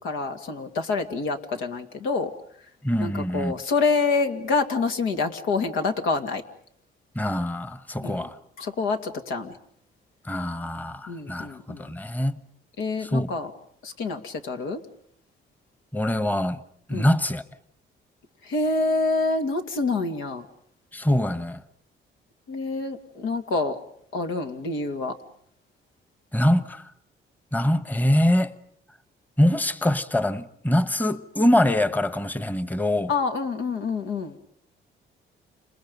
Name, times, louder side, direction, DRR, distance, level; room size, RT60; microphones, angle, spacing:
voice 1, 0.0-2.3 3.0-6.4 8.0-8.3 8.6-9.6 11.1-11.9 12.8-13.5 13.8-14.8 16.9-17.1 18.4-20.5 22.5-23.8 24.1-25.1 33.1-34.4, left 3 dB, 85° left, 2.3 m, -27 dB
voice 2, 2.8-3.5 7.1-8.4 10.2-12.4 13.0-13.3 15.9-16.6 16.9-17.4 20.9-21.6 26.3-26.9 27.5-28.5 29.4-33.1, left 1 dB, 10° left, 1.2 m, -24 dB
30.0 x 27.5 x 5.4 m
cardioid pair, 90°, 20 cm